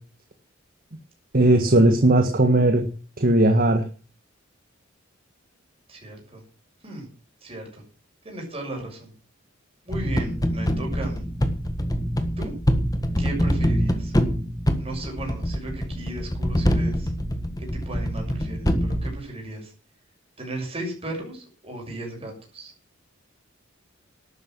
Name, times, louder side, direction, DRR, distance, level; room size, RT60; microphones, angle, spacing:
voice 1, 1.3-2.8 3.2-3.8, right 1 dB, 45° right, 5 dB, 1.6 m, -17 dB
voice 2, 5.9-6.4 6.8-7.1 7.4-7.8 8.2-9.1 9.8-11.3 12.4-12.5 13.2-14.1 14.8-17.1 17.6-19.7 20.4-22.7, right 2 dB, 30° right, 1 dB, 6.7 m, -35 dB
sound 1, 9.9-19.1, equal, 20° left, 1.6 m, -25 dB
12.0 x 9.3 x 7.7 m, 0.38 s
head